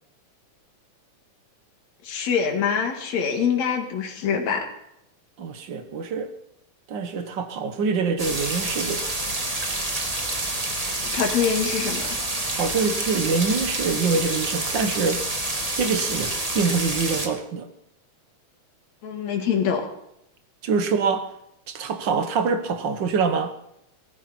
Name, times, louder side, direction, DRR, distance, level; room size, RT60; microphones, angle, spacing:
voice 1, 2.0-4.6 11.1-12.1 19.0-19.9, left 7 dB, 70° left, 3.1 m, -24 dB
voice 2, 5.4-6.3 6.9-9.1 12.5-15.2 15.8-17.7 20.6-21.3 21.7-23.6, right 5 dB, 55° right, 1.4 m, -25 dB
sound 1, 8.2-17.3, right 2 dB, 20° right, 0.9 m, -28 dB
17.5 x 14.0 x 4.3 m
omnidirectional pair, 3.3 m